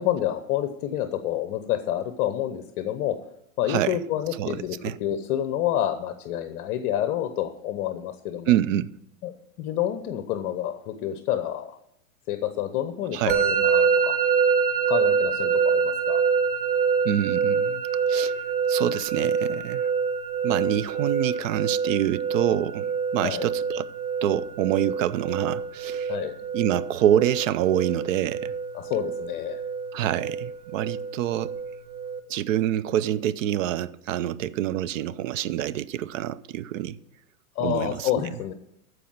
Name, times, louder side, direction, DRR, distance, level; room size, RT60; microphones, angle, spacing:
voice 1, 0.0-3.2 3.6-8.5 9.2-9.3 9.6-11.8 12.3-14.2 14.9-16.2 23.2-23.5 26.1-26.3 28.7-29.6 37.6-38.5, left 11 dB, 40° left, 0.9 m, -28 dB
voice 2, 3.7-4.0 4.4-5.0 8.5-8.9 13.1-13.4 17.0-18.3 18.7-19.9 20.4-23.8 24.2-26.2 26.5-28.5 29.9-31.5 32.3-37.0 37.6-38.1, right 11 dB, 60° right, 0.6 m, -26 dB
Musical instrument, 13.3-32.2, right 6 dB, 90° right, 1.3 m, -26 dB
14.0 x 4.8 x 7.4 m
hypercardioid pair, 135°, 44 cm